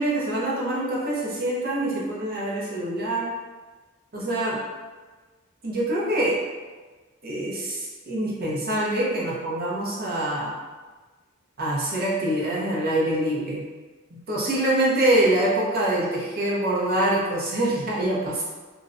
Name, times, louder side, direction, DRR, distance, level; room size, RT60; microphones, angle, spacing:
voice 1, 0.0-3.3 4.1-4.6 5.6-6.4 7.2-10.6 11.6-13.6 14.1-18.4, right 1 dB, 45° right, -5 dB, 0.7 m, -25 dB
2.5 x 2.1 x 2.5 m, 1.3 s
head